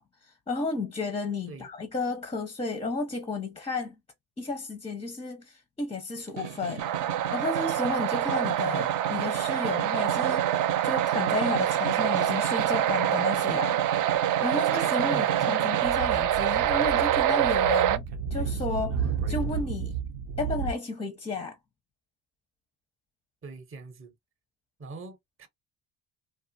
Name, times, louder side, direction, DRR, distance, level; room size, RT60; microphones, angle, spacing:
voice 1, 0.0-3.9 4.4-6.9 7.3-10.5 10.8-13.8 14.4-18.0 18.3-19.9 20.4-21.6, left 3 dB, 15° left, 0.5 m, -32 dB
Snare drum, 6.2-15.9, right 9 dB, 65° right, 0.9 m, -36 dB
sound 1, 6.8-18.0, right 11 dB, 45° right, 0.4 m, -26 dB
voice 2, 15.1-15.9 23.4-24.1 24.8-25.5, right 3 dB, 30° right, 0.8 m, -44 dB
Speech / Wind, 15.8-20.7, right 6 dB, 85° right, 0.8 m, -32 dB
2.5 x 2.4 x 2.6 m
supercardioid pair, 85°, 46 cm